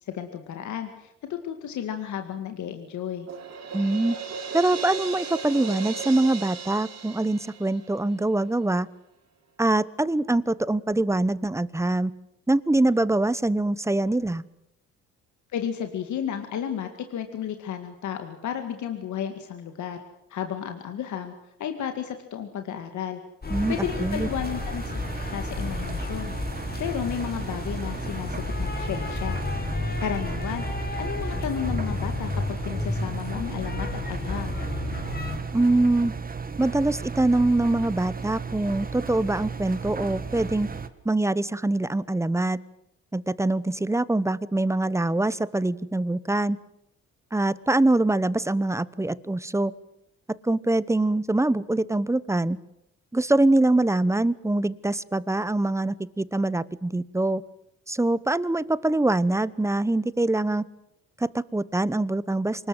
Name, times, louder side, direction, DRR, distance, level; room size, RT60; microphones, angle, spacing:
voice 1, 0.0-3.3 15.5-20.0 20.3-21.3 21.6-23.2 23.7-24.9 25.3-26.3 26.8-29.4 30.0-34.6, left 9 dB, 70° left, 6 dB, 2.2 m, -33 dB
Crash cymbal, 3.3-8.2, right 5 dB, 60° right, 5.0 m, -36 dB
voice 2, 3.7-4.2 4.5-8.9 9.6-12.1 12.5-14.4 23.5-24.3 35.5-36.1 36.6-40.7 41.0-42.6 43.1-46.6 47.3-49.7 50.4-52.6 53.1-57.4 57.9-60.6 61.2-62.7, right 2 dB, 10° right, 18 dB, 0.9 m, -24 dB
sound 1, 23.4-35.4, left 3 dB, 30° left, 4.0 m, -32 dB
Engine, 23.5-40.9, right 5 dB, 30° right, 1.9 m, -35 dB
25.0 x 20.5 x 7.8 m, 0.83 s
cardioid pair, 90°, 30 cm